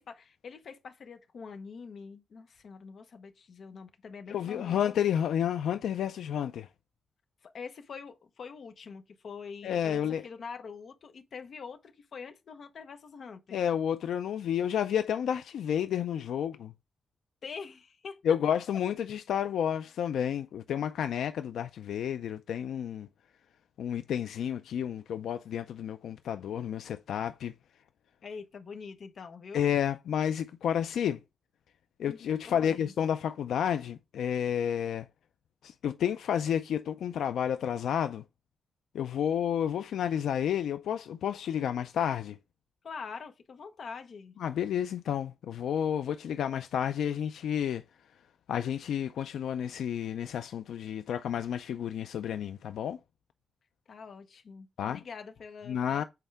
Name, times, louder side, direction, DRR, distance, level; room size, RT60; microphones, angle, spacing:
voice 1, 0.0-5.0 7.4-13.6 17.4-18.2 28.2-29.7 32.1-32.9 42.8-44.3 53.9-56.0, left 5 dB, 45° left, 1.0 m, -45 dB
voice 2, 4.3-6.7 9.6-10.2 13.5-16.7 18.2-23.1 23.8-27.5 29.5-31.2 32.0-35.1 35.6-38.2 38.9-42.4 44.4-47.8 48.5-53.0 54.8-55.0 55.7-56.0, left 9 dB, 80° left, 0.4 m, -31 dB
7.8 x 4.5 x 3.4 m
wide cardioid pair, 180°, 0 cm